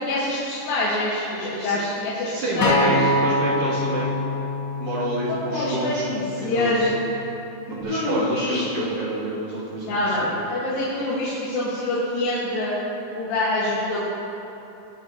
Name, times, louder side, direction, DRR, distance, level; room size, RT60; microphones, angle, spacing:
voice 1, 0.0-3.1 5.3-6.9 7.9-8.9 9.8-12.8 13.2-14.0, left 2 dB, 85° left, -9 dB, 3.5 m, -25 dB
voice 2, 2.3-4.2 4.8-7.0 7.7-10.3, right 1 dB, 45° right, -8 dB, 3.3 m, -29 dB
Acoustic guitar, 2.6-6.9 7.7-7.8, left 1 dB, 40° left, 2.1 m, -25 dB
20.0 x 9.5 x 2.9 m, 2.9 s
omnidirectional pair, 4.0 m